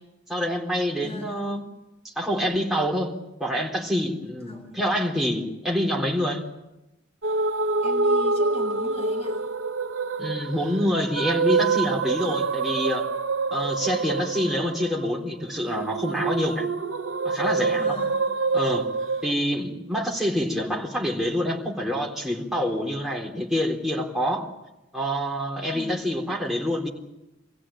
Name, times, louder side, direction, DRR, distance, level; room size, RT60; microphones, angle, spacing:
voice 1, 0.3-1.6 2.0-3.1 3.4-6.4 10.2-13.1 13.5-16.7 17.2-18.0 18.5-18.9 19.2-24.5 24.9-26.9, equal, ahead, 3.9 m, -26 dB
voice 2, 0.9-1.4 4.4-4.7 7.8-9.7 17.7-18.2 25.6-26.0, left 2 dB, 35° left, 7.9 m, -40 dB
sound 1, 7.2-19.3, right 4 dB, 75° right, 0.9 m, -26 dB
26.0 x 16.0 x 8.9 m
head